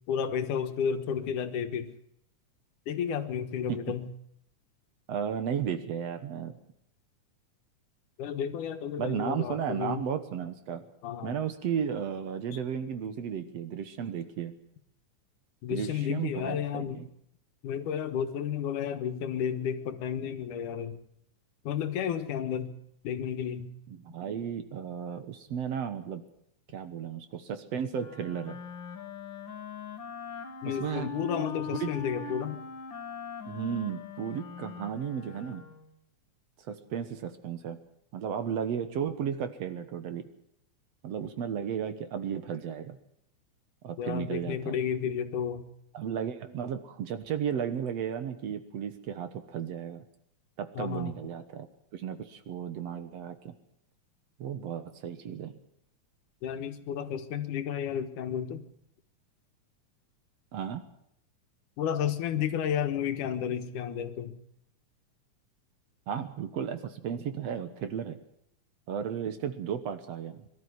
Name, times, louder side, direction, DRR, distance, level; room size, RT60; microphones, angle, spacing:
voice 1, 0.1-1.9 2.9-4.1 8.2-10.0 11.0-11.4 15.6-17.0 17.6-21.0 21.6-22.8 23.0-23.7 30.6-32.6 44.0-45.6 50.8-51.1 56.4-58.6 61.8-64.4, left 8 dB, 85° left, 9 dB, 2.8 m, -32 dB
voice 2, 5.1-6.5 9.0-10.8 11.2-14.5 15.7-17.1 23.9-26.2 26.7-28.6 30.7-31.1 31.8-31.9 32.2-32.3 33.5-35.6 36.7-37.8 38.1-40.3 41.0-43.0 43.8-44.8 45.9-50.0 50.6-51.7 51.9-53.5 54.4-55.5 60.5-60.8 66.1-68.2 68.9-70.5, right 8 dB, 60° right, 10 dB, 2.2 m, -34 dB
Wind instrument woodwind instrument, 27.9-36.0, left 5 dB, 45° left, 2.2 m, -41 dB
22.5 x 12.5 x 9.6 m, 0.72 s
omnidirectional pair, 3.5 m